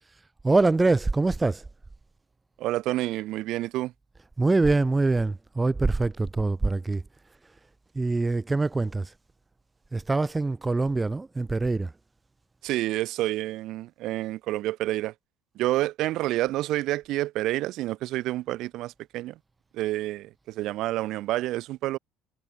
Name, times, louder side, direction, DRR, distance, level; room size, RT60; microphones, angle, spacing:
voice 1, 0.4-1.6 4.4-7.0 7.9-9.1 9.9-11.9, right 3 dB, 10° right, 0.6 m, -24 dB
voice 2, 2.6-3.9 12.6-15.1 15.6-19.3 19.7-22.0, right 16 dB, 50° right, 1.0 m, -28 dB
cardioid pair, 170°, 0 cm